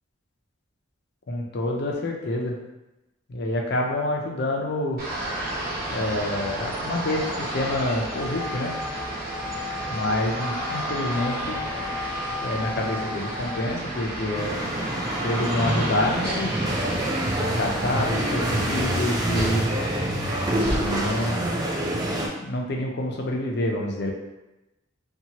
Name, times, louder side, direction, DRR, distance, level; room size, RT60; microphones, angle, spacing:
voice 1, 1.3-2.6 3.3-5.0 5.9-8.7 9.9-11.6 12.4-14.5 15.2-16.5 17.4-19.7 20.5-21.4 22.4-24.1, left 1 dB, 55° left, 0 dB, 0.5 m, -27 dB
sound 1, 5.0-21.3, right 1 dB, 50° right, 0.8 m, -32 dB
Wind instrument woodwind instrument, 8.0-13.6, left 2 dB, ahead, 1.0 m, -34 dB
sound 2, 14.3-22.3, right 1 dB, 20° right, 0.3 m, -27 dB
2.8 x 2.3 x 2.8 m, 0.97 s
head